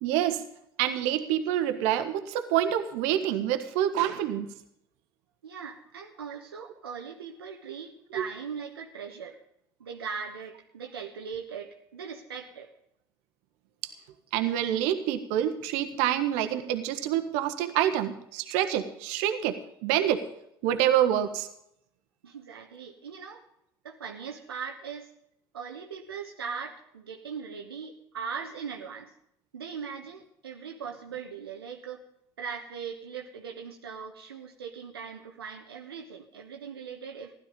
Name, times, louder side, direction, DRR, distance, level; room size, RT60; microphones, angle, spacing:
voice 1, 0.0-0.4 0.8-4.5 8.1-8.2 14.3-19.6 19.8-20.2 20.6-21.5, right 11 dB, 65° right, 8 dB, 1.4 m, -27 dB
voice 2, 5.4-9.4 9.8-12.7 22.2-23.4 23.8-25.1 25.5-29.1 29.5-32.1 32.4-37.3, right 6 dB, 85° right, 2 dB, 1.2 m, -40 dB
15.5 x 12.0 x 5.3 m, 0.73 s
hypercardioid pair, 65°, 12 cm